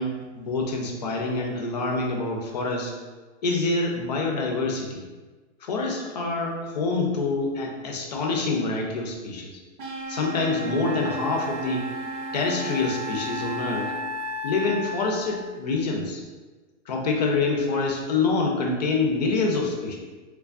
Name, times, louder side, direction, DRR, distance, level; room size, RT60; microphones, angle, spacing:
voice 1, 0.0-2.9 3.4-5.0 5.6-9.6 10.1-11.9 12.3-13.9 14.4-16.2 16.9-20.0, left 3 dB, 35° left, 1 dB, 0.4 m, -26 dB
sound 1, 9.8-13.9, right 2 dB, 45° right, 0.7 m, -35 dB
Wind instrument woodwind instrument, 10.8-15.5, left 2 dB, 75° right, 0.7 m, -35 dB
3.4 x 3.3 x 2.4 m, 1.3 s
hypercardioid pair, 165°, 36 cm